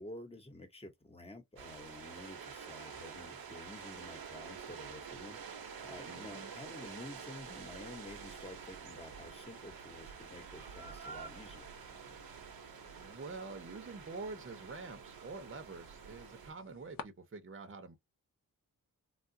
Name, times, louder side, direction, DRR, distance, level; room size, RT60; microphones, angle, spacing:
voice 1, 0.0-11.7, left 1 dB, 15° left, 1.1 m, -50 dB
sound 1, 1.6-16.5, right 6 dB, 85° right, 0.8 m, -48 dB
sound 2, 5.8-17.0, left 7 dB, 70° left, 0.6 m, -58 dB
voice 2, 6.0-6.5 12.9-18.0, right 3 dB, 35° right, 0.8 m, -46 dB
3.6 x 2.4 x 2.6 m
wide cardioid pair, 100°, 35 cm